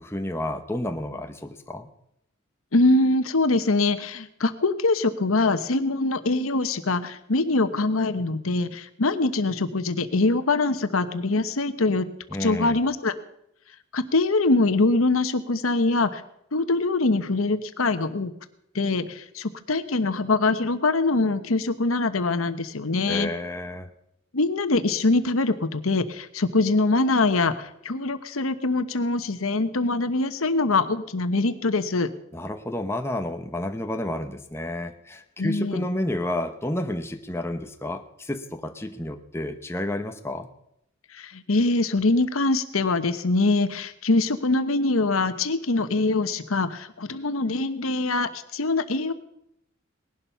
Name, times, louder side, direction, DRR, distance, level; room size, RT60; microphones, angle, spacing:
voice 1, 0.0-1.9 12.3-12.8 23.1-23.9 32.3-40.5, left 1 dB, 10° left, 6 dB, 0.9 m, -30 dB
voice 2, 2.7-12.1 12.4-13.1 13.9-16.2 16.5-18.3 18.7-23.3 24.3-32.1 35.4-35.9 41.1-49.1, left 3 dB, 85° left, 11 dB, 1.1 m, -23 dB
19.0 x 11.5 x 5.7 m, 0.79 s
head